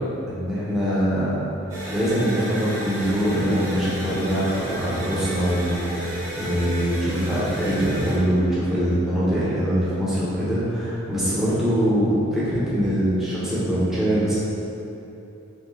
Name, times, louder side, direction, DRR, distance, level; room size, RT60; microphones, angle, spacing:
voice 1, 0.3-1.4 1.9-14.4, equal, ahead, -10 dB, 0.8 m, -23 dB
sound 1, 1.7-8.2, right 1 dB, 65° right, 1.0 m, -33 dB
3.7 x 3.2 x 3.1 m, 2.9 s
head